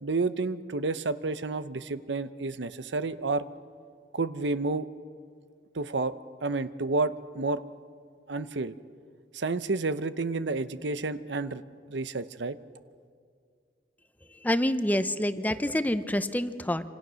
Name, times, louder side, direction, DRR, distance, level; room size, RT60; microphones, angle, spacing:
voice 1, 0.0-3.5 4.1-4.9 5.7-6.1 6.4-7.6 8.3-8.8 9.3-11.6 11.9-12.6, right 3 dB, 75° right, 13 dB, 0.8 m, -30 dB
voice 2, 14.4-16.9, left 1 dB, 10° left, 11 dB, 0.8 m, -27 dB
27.0 x 26.5 x 6.3 m, 2.2 s
head